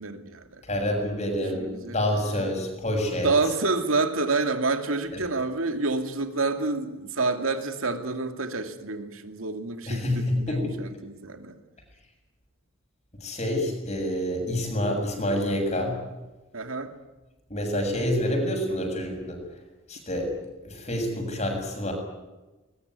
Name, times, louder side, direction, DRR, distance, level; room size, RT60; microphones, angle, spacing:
voice 1, 0.0-0.6 1.2-2.0 3.2-11.6 16.5-16.9, right 3 dB, 90° right, 7 dB, 2.5 m, -28 dB
voice 2, 0.6-3.3 5.1-5.2 9.9-10.7 13.2-16.0 17.5-19.4 19.9-20.3 20.6-21.9, left 1 dB, 35° left, 3 dB, 7.0 m, -27 dB
21.5 x 21.0 x 9.6 m, 1.1 s
head